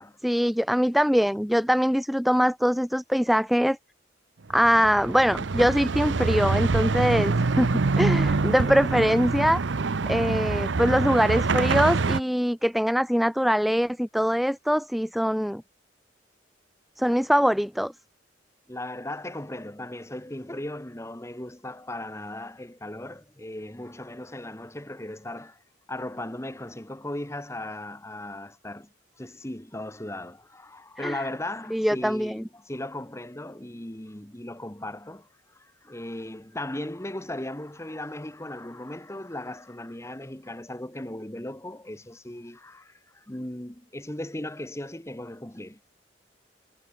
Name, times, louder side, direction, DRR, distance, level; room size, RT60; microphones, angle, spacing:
voice 1, 0.2-3.8 4.5-9.6 10.1-15.6 17.0-17.9 31.0-31.2 31.7-32.4, equal, ahead, 0.3 m, -23 dB
sound 1, 4.5-12.2, right 3 dB, 85° right, 0.7 m, -25 dB
voice 2, 18.7-25.6 25.9-45.8, left 1 dB, 15° left, 1.5 m, -37 dB
head